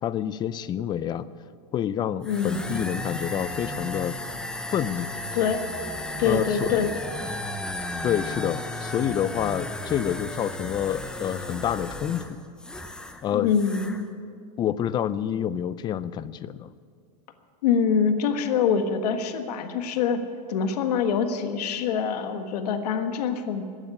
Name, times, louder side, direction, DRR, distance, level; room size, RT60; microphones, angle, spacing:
voice 1, 0.0-1.3 1.7-4.2 4.7-5.1 6.3-6.9 8.0-12.4 13.2-13.5 14.6-16.7, left 10 dB, 20° left, 16 dB, 0.4 m, -28 dB
sound 1, 2.2-13.2 13.5-14.0, left 1 dB, 5° left, 0.8 m, -34 dB
voice 2, 2.3-2.8 5.3-5.7 6.2-6.9 13.3-14.0 17.6-20.2 20.5-23.6, left 6 dB, 70° left, 7 dB, 1.6 m, -25 dB
15.0 x 10.0 x 9.6 m, 2.2 s
supercardioid pair, 145°, 21 cm